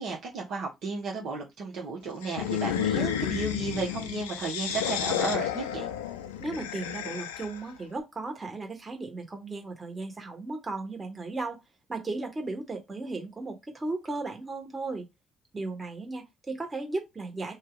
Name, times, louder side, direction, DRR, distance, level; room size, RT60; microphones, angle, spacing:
voice 1, 0.0-5.9, right 4 dB, 65° right, 1.0 m, -33 dB
sound 1, 2.2-7.7, left 10 dB, 85° left, 0.3 m, -31 dB
voice 2, 6.4-11.6 11.9-15.1 15.5-17.5, right 3 dB, 30° right, 1.5 m, -35 dB
2.7 x 2.3 x 3.8 m
hypercardioid pair, 50°, 0 cm